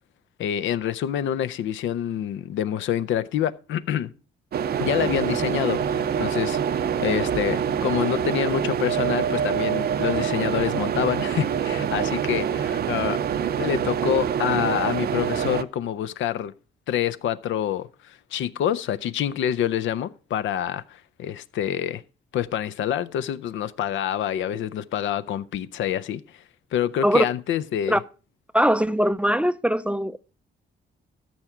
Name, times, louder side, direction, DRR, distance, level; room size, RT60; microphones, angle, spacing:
voice 1, 0.4-4.1 4.8-13.2 13.6-16.5 16.9-22.0 22.3-26.4 26.7-28.0, left 10 dB, 75° left, 0.6 m, -27 dB
sound 1, 4.5-15.6, right 8 dB, 50° right, 0.6 m, -25 dB
voice 2, 28.5-30.2, equal, 5° right, 0.4 m, -21 dB
13.5 x 5.9 x 4.8 m
cardioid pair, 90°, 20 cm